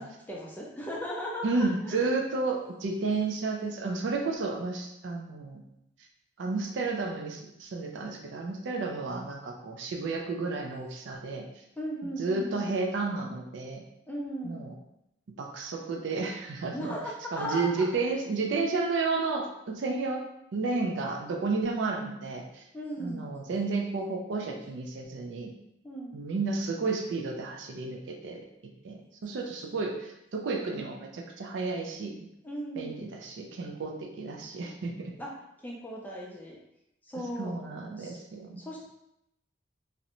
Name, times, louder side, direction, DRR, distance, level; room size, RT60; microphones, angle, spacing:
voice 1, 0.0-2.0 11.8-12.8 14.1-14.6 16.7-17.9 22.7-23.3 25.8-26.2 32.4-33.1 35.2-35.3 35.6-36.6 37.0-37.5 38.0-38.2 38.6-38.8, equal, 10° left, -3 dB, 0.4 m, -37 dB
voice 2, 1.4-5.6 6.4-11.4 12.2-13.8 14.4-14.7 15.4-16.9 17.3-20.2 20.5-22.6 23.0-25.5 26.1-28.4 28.8-32.2 32.8-35.1 37.4-38.6, right 3 dB, 65° right, 2 dB, 0.4 m, -32 dB
2.5 x 2.1 x 2.9 m, 0.82 s
head